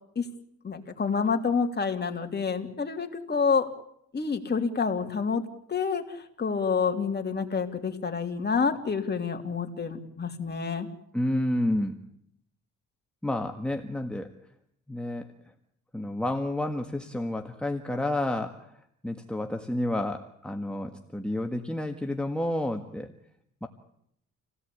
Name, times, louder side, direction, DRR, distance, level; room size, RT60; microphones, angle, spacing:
voice 1, 0.6-3.7 4.1-5.4 5.7-10.9, left 5 dB, 35° left, 4 dB, 3.2 m, -28 dB
voice 2, 11.1-12.0 13.2-14.3 14.9-15.3 15.9-18.7 19.0-23.1 23.6-23.7, left 1 dB, 5° left, 4 dB, 1.7 m, -30 dB
28.0 x 17.0 x 8.5 m, 0.73 s
cardioid pair, 90°, 30 cm